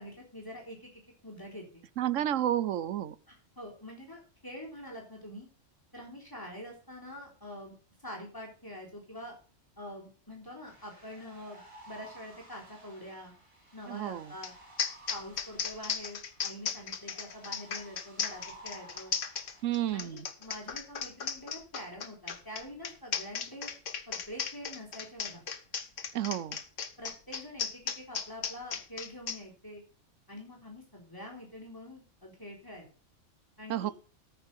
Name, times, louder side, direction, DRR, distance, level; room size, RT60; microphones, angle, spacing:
voice 1, 0.0-1.8 3.3-5.5 5.9-9.4 9.8-13.3 13.7-14.5 15.1-19.1 19.9-23.7 24.1-25.4 27.0-29.8 30.3-32.9 33.6-33.9, left 1 dB, 15° left, 3.9 m, -45 dB
voice 2, 2.0-3.1 13.9-14.3 19.6-20.3 26.1-26.6 33.7-33.9, right 12 dB, 85° right, 1.1 m, -31 dB
sound 1, 10.7-19.6, right 1 dB, 25° right, 5.1 m, -55 dB
sound 2, 14.4-14.5 14.8-29.4, left 6 dB, 80° left, 1.5 m, -36 dB
13.5 x 6.0 x 5.6 m
omnidirectional pair, 1.3 m